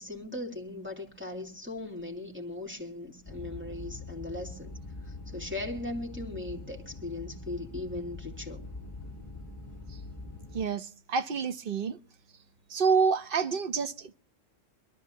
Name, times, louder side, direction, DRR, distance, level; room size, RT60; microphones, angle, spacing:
voice 1, 0.0-4.8 5.0-8.6, left 2 dB, 10° right, 3.0 m, -38 dB
sound 1, 3.3-10.7, left 3 dB, 10° left, 2.6 m, -43 dB
voice 2, 10.5-12.0 12.7-14.1, right 5 dB, 50° right, 1.0 m, -28 dB
22.5 x 13.5 x 2.8 m
omnidirectional pair, 1.3 m